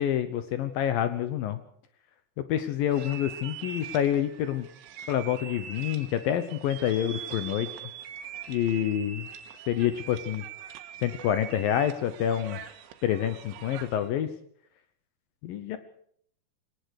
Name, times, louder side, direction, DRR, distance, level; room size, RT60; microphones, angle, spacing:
voice 1, 0.0-1.6 2.4-4.7 5.1-7.8 8.5-9.3 9.7-10.4 11.0-12.6 13.0-14.3 15.4-15.8, left 10 dB, 70° left, 11 dB, 2.2 m, -27 dB
sound 1, 2.9-14.1, right 8 dB, 85° right, 3.7 m, -43 dB
22.0 x 18.5 x 6.5 m, 0.65 s
omnidirectional pair, 5.2 m